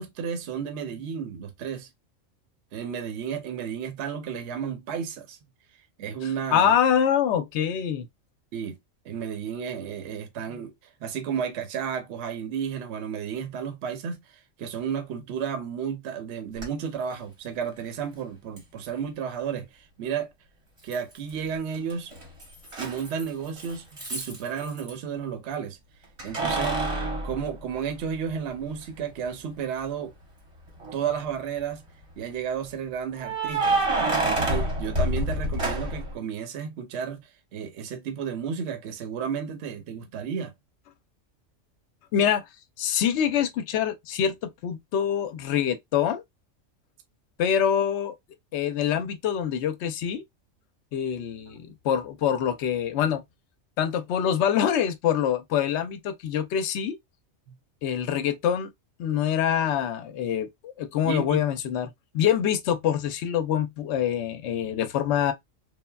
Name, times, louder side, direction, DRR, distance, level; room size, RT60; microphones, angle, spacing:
voice 1, 0.0-1.9 2.7-5.4 6.0-6.8 8.5-8.8 9.0-10.7 11.0-20.3 20.8-22.1 22.8-25.8 26.2-26.8 27.2-30.1 30.9-31.8 32.2-33.8 34.2-40.5 57.5-57.6 61.0-61.4, right 7 dB, 65° right, 0.9 m, -32 dB
voice 2, 6.5-8.1 42.1-42.4 42.8-46.2 47.4-48.1 48.5-50.2 50.9-53.2 53.8-57.0 57.8-58.7 59.0-65.3, left 9 dB, 65° left, 0.8 m, -25 dB
Keys jangling, 16.6-16.7 18.6-18.7 20.9-21.4 21.7-24.9 26.2-28.3 28.8-28.9 30.7-31.2 33.2-36.1, right 2 dB, 30° right, 0.8 m, -28 dB
3.3 x 2.1 x 2.2 m
omnidirectional pair, 1.3 m